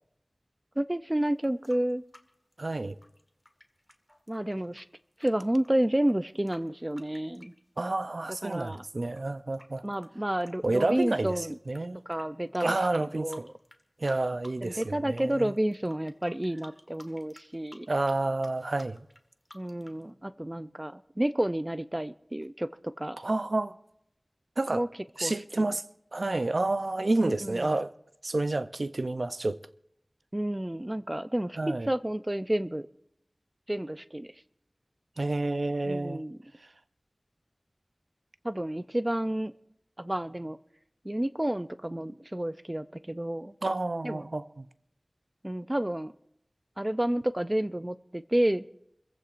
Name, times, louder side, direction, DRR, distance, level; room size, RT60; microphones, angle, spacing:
voice 1, 0.8-2.0 4.3-4.9 5.2-7.5 8.4-8.8 9.8-11.6 12.1-12.8 13.0-13.5 14.6-17.9 19.5-23.2 24.7-24.9 25.2-25.7 27.2-27.7 30.3-32.9 33.7-34.3 35.9-36.4 38.4-39.5 40.0-40.6 41.0-43.5 44.0-44.3 45.4-46.1 46.8-48.6, right 1 dB, 25° right, 0.4 m, -30 dB
sound 1, 1.2-8.3 8.7-11.8 12.1-12.2 12.5-13.8 14.1-14.9 15.1-20.0, left 1 dB, 15° left, 1.4 m, -54 dB
voice 2, 2.6-3.0 7.8-9.8 10.6-12.0 12.6-13.3 14.0-15.5 17.9-19.0 23.2-23.8 24.6-24.8 25.2-25.8 26.1-27.9 28.2-29.6 31.6-31.9 35.2-36.2 43.6-44.7, right 2 dB, 70° right, 0.5 m, -29 dB
27.5 x 15.0 x 2.5 m
wide cardioid pair, 50°, 0 cm